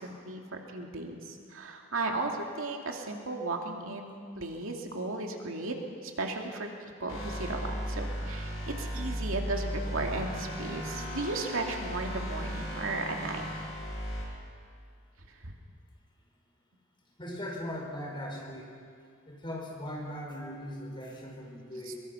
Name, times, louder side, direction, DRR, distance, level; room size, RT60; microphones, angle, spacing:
voice 1, 0.0-5.7 6.0-13.5 15.4-15.5 21.8-21.9, right 2 dB, 90° right, 2 dB, 2.5 m, -35 dB
sound 1, 7.1-14.2, equal, 80° left, 6.6 m, -36 dB
voice 2, 17.2-18.7 19.3-22.0, equal, 25° left, -1 dB, 5.1 m, -39 dB
23.0 x 22.5 x 5.8 m, 2.2 s
head